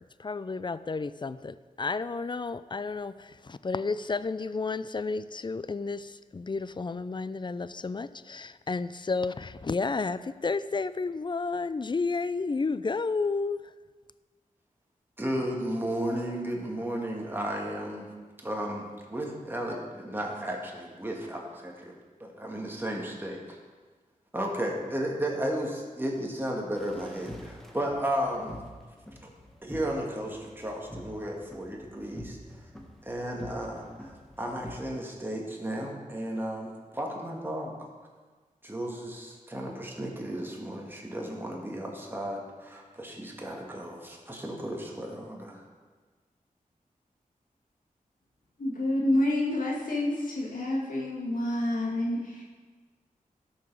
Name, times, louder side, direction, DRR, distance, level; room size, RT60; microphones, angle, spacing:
voice 1, 0.2-13.7, left 4 dB, 30° left, 15 dB, 0.4 m, -31 dB
voice 2, 15.2-18.1 18.4-21.9 22.2-23.6 24.3-28.5 29.2-29.3 29.6-32.4 33.0-37.7 38.6-45.6, right 1 dB, 15° right, -1 dB, 1.8 m, -34 dB
sound 1, 26.8-34.8, equal, ahead, 1.4 m, -46 dB
voice 3, 48.6-52.4, left 1 dB, 70° left, -4 dB, 1.8 m, -28 dB
12.5 x 5.7 x 4.6 m, 1.4 s
cardioid pair, 50°, 15 cm